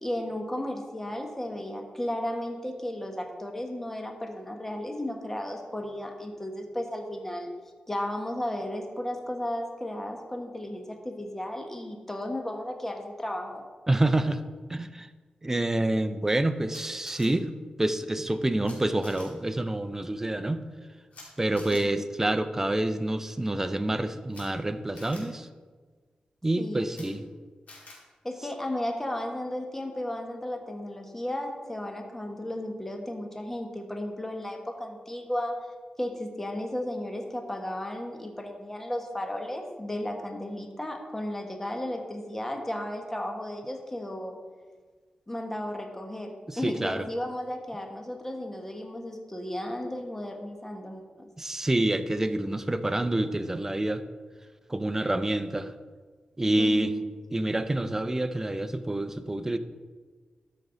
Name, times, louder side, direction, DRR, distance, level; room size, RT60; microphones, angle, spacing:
voice 1, 0.0-7.5 7.9-13.6 21.8-22.0 26.6-27.1 28.2-35.6 36.0-44.4 45.3-51.3 56.6-56.9, left 1 dB, 15° left, 3 dB, 1.2 m, -34 dB
voice 2, 13.9-14.4 14.7-15.1 15.4-17.5 17.8-20.6 21.4-25.5 26.4-27.2 46.5-47.0 51.4-54.0 54.7-55.7 56.4-56.9 57.3-59.6, right 1 dB, 15° right, 10 dB, 0.5 m, -27 dB
Camera, 16.7-17.3 18.6-18.7 19.0-19.2 21.1-21.2 21.5-21.8 24.3-24.4 24.9-25.2 26.9-27.0 27.7-27.9, left 3 dB, 70° left, 2.6 m, -47 dB
13.0 x 5.4 x 3.9 m, 1.4 s
wide cardioid pair, 95°, 3 cm